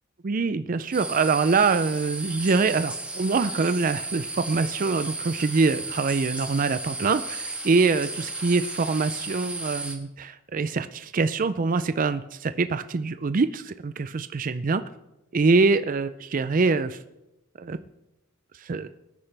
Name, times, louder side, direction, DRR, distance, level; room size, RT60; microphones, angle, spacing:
voice 1, 0.2-14.8 15.3-17.0 17.6-17.8 18.6-18.9, right 4 dB, 40° right, 11 dB, 0.4 m, -24 dB
sound 1, 0.9-10.0, right 2 dB, 5° right, 1.4 m, -34 dB
23.5 x 9.9 x 3.4 m, 0.94 s
head